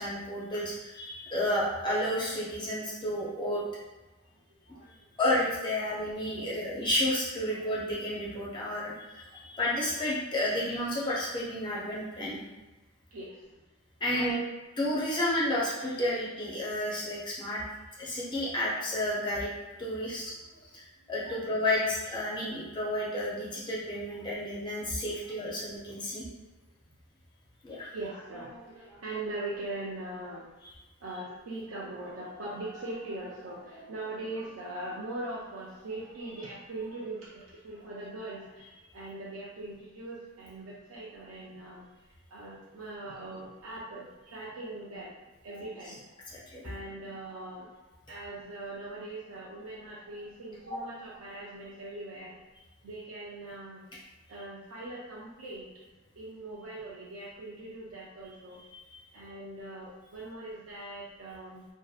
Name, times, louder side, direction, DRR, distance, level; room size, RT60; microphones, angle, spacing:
voice 1, 0.0-3.6 5.2-12.4 14.0-14.3 14.8-17.6 18.0-19.5 19.8-20.3 21.1-26.3 27.6-27.9 46.3-46.6 50.7-50.8, left 1 dB, 20° left, -6 dB, 0.4 m, -31 dB
voice 2, 4.6-5.0 5.8-5.9 6.4-6.5 7.5-7.6 9.4-9.6 13.1-13.5 14.1-14.5 20.5-20.6 21.2-21.4 24.1-24.3 25.2-25.3 27.9-30.5 31.0-45.1 45.4-46.2 46.6-52.4 52.8-53.9 54.3-55.7 56.2-58.6 59.1-61.7, right 2 dB, 80° right, -6 dB, 0.4 m, -41 dB
2.5 x 2.1 x 2.3 m, 1.1 s
head